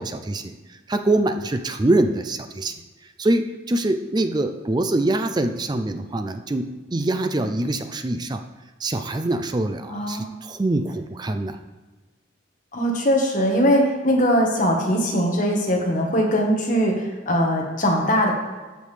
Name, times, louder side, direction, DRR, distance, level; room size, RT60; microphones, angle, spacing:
voice 1, 0.0-2.7 3.2-8.5 8.8-11.6, right 2 dB, 20° right, 8 dB, 0.4 m, -24 dB
voice 2, 9.9-10.3 12.7-18.3, equal, 40° left, 0 dB, 1.4 m, -21 dB
13.5 x 5.3 x 3.3 m, 1.3 s
head